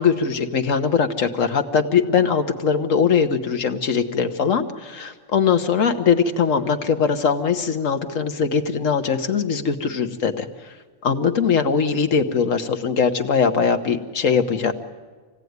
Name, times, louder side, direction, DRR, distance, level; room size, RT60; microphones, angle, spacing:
voice 1, 0.0-10.5 11.0-14.7, left 6 dB, 70° left, 7 dB, 1.5 m, -21 dB
25.5 x 17.0 x 9.5 m, 1.4 s
omnidirectional pair, 1.4 m